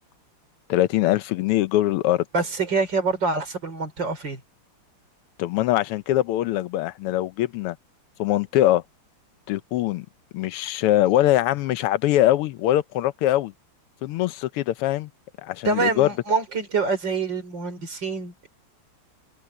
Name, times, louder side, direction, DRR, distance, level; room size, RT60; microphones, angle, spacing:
voice 1, 0.7-2.2 5.4-7.8 8.2-8.8 9.5-10.1 10.3-13.5 14.0-15.1 15.4-16.1, left 14 dB, 90° left, 1.6 m, -22 dB
voice 2, 2.3-4.4 15.6-18.5, right 4 dB, 55° right, 4.3 m, -25 dB
omnidirectional pair, 2.4 m